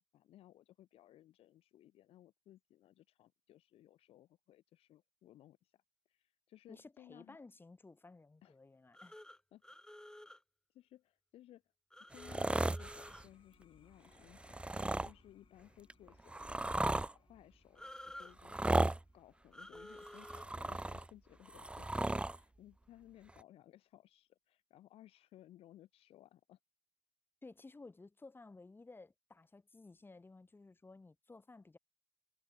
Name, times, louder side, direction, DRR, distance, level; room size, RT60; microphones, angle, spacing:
voice 1, 0.1-5.8 6.1-7.4 8.4-8.6 9.5-9.6 10.2-10.4 10.7-11.6 12.1-18.7 19.1-26.6, left 13 dB, 85° left, 6.4 m, -61 dB
voice 2, 6.7-9.2 27.4-31.8, left 3 dB, 20° left, 1.5 m, -56 dB
sound 1, 8.9-10.4 11.9-13.3 17.8-18.3 19.5-20.4, left 1 dB, 5° left, 1.6 m, -52 dB
sound 2, 11.9-23.1, left 8 dB, 65° left, 4.5 m, -74 dB
sound 3, 12.1-13.2 14.4-15.1 15.9-17.1 18.4-19.0 20.0-21.1 21.5-22.4 23.4-23.5, right 2 dB, 10° right, 0.5 m, -35 dB
cardioid pair, 75°, 10 cm